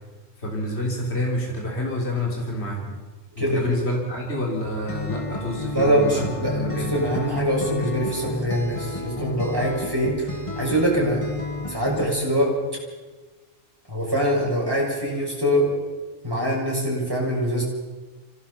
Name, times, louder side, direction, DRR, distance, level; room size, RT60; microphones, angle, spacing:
voice 1, 0.4-3.0 3.4-6.9, left 1 dB, 55° left, -1 dB, 3.8 m, -28 dB
voice 2, 3.4-3.8 5.7-11.2 11.7-12.5 13.9-15.7 16.2-17.6, equal, 15° right, -4 dB, 6.9 m, -23 dB
Acoustic guitar, 4.9-12.1, left 3 dB, 25° left, 1.5 m, -31 dB
25.5 x 17.5 x 5.8 m, 1.3 s
omnidirectional pair, 1.3 m